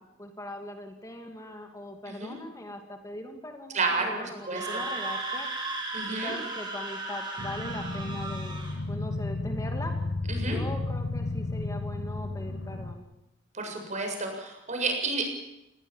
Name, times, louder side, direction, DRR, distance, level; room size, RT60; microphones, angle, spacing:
voice 1, 0.0-5.5 6.1-9.9 10.4-13.1, left 1 dB, 20° left, 4 dB, 2.5 m, -40 dB
voice 2, 3.7-4.7 5.9-6.3 10.3-10.6 13.5-15.3, right 3 dB, 40° right, 3 dB, 7.5 m, -31 dB
Screaming, 4.4-8.8, right 3 dB, 25° right, 7.5 m, -35 dB
sound 1, 7.4-12.9, left 2 dB, 75° left, 1.6 m, -33 dB
28.0 x 20.0 x 7.4 m, 0.89 s
head